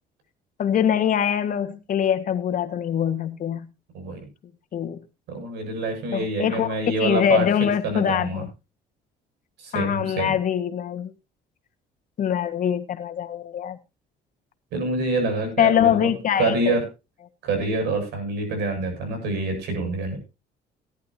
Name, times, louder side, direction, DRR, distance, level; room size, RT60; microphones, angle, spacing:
voice 1, 0.6-3.7 4.7-5.0 6.1-8.5 9.7-11.1 12.2-13.8 15.6-16.7, left 9 dB, 50° left, 1.7 m, -23 dB
voice 2, 3.9-4.3 5.3-8.4 9.6-10.3 14.7-16.1 16.4-16.8 17.4-20.2, right 2 dB, 80° right, 7.6 m, -26 dB
18.0 x 11.0 x 2.8 m
cardioid pair, 110°, 17 cm